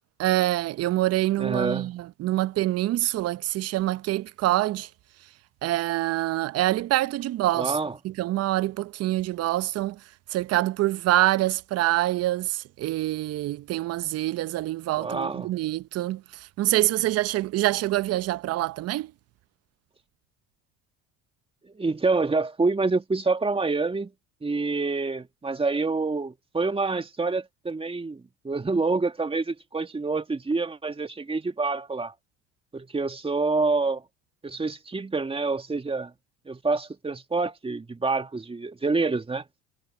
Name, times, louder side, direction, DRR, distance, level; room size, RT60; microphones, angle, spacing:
voice 1, 0.2-4.9 5.6-7.8 8.0-10.0 10.3-19.1, right 15 dB, 55° right, 0.8 m, -25 dB
voice 2, 1.4-1.9 7.5-8.0 15.0-15.5 21.6-24.1 24.4-32.1 32.7-34.0 34.4-36.1 36.5-39.4, right 3 dB, 20° right, 2.1 m, -27 dB
supercardioid pair, 80°, 30 cm